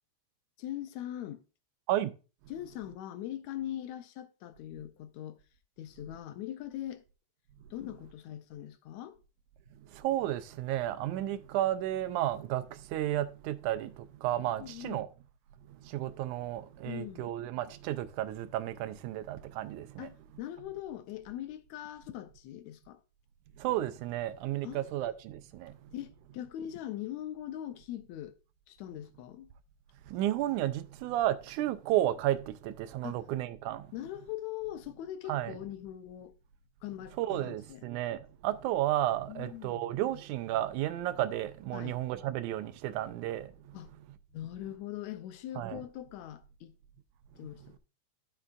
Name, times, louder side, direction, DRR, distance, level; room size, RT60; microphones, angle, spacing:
voice 1, 0.6-1.4 2.5-5.4 5.8-7.0 7.7-9.2 14.6-15.0 16.8-17.3 20.0-23.0 24.6-25.1 25.9-28.4 28.7-29.5 33.0-33.2 33.9-36.3 36.8-37.8 39.3-39.9 41.7-42.0 43.7-43.9 44.3-46.8 47.4-47.8, left 12 dB, 80° left, 1.8 m, -41 dB
voice 2, 9.8-15.1 15.7-20.1 23.6-25.9 30.1-33.9 35.3-35.6 37.2-43.8 45.6-45.8, right 13 dB, 85° right, 2.1 m, -33 dB
13.0 x 5.5 x 2.4 m
omnidirectional pair, 3.4 m